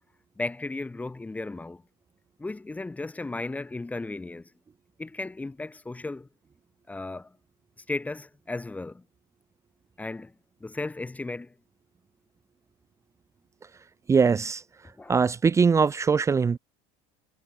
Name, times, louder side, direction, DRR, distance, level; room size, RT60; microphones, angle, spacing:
voice 1, 0.4-1.8 2.4-4.5 5.0-6.3 6.9-7.4 7.9-9.0 10.0-10.3 10.6-11.5 15.0-15.2, left 2 dB, 10° left, 1.9 m, -35 dB
voice 2, 14.1-14.6 15.1-16.6, right 5 dB, 15° right, 1.4 m, -21 dB
cardioid pair, 155°, 18 cm